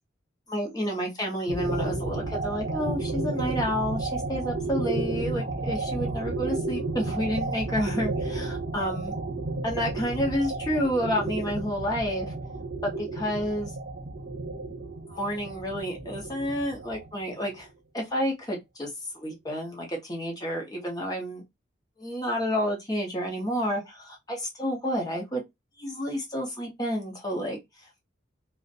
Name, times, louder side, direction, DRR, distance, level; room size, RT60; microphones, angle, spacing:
voice 1, 0.5-9.1 9.6-12.3 12.8-13.7 15.1-17.7 17.9-21.4 22.0-25.4 25.8-27.6, equal, 20° left, 0.7 m, -30 dB
sound 1, 1.5-17.6, right 3 dB, 60° right, 0.7 m, -32 dB
2.5 x 2.1 x 2.5 m
head